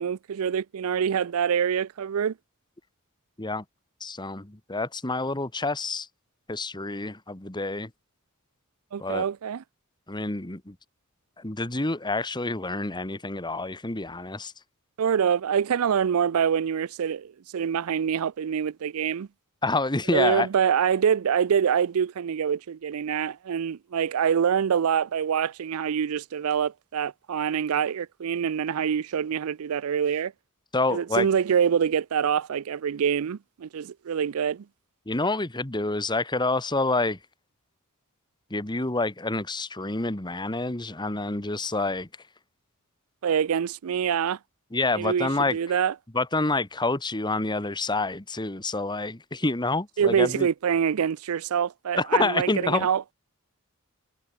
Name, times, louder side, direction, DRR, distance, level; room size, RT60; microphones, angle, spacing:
voice 1, 0.0-2.3 8.9-9.6 15.0-19.3 20.1-30.3 30.9-34.6 43.2-44.4 45.0-45.9 50.0-53.0, right 7 dB, 75° right, 0.4 m, -25 dB
voice 2, 4.0-6.1 6.5-7.9 9.0-9.3 10.1-10.8 11.4-14.5 19.6-20.5 30.7-31.3 35.0-37.2 38.5-42.1 44.7-45.8 46.1-50.5 52.0-52.9, left 2 dB, 20° left, 1.7 m, -28 dB
head